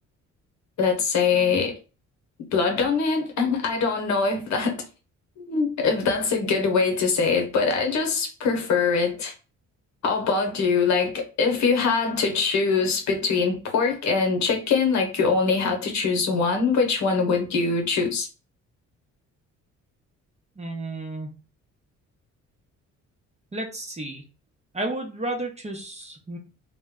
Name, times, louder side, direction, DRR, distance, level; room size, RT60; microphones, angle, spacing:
voice 1, 0.8-1.7 2.5-4.8 5.4-9.3 10.0-18.3, left 5 dB, 65° left, 0.9 m, -23 dB
voice 2, 20.6-21.3 23.5-24.2 24.7-26.4, right 2 dB, 20° right, 0.7 m, -32 dB
2.1 x 2.1 x 3.5 m
cardioid pair, 90°, 30 cm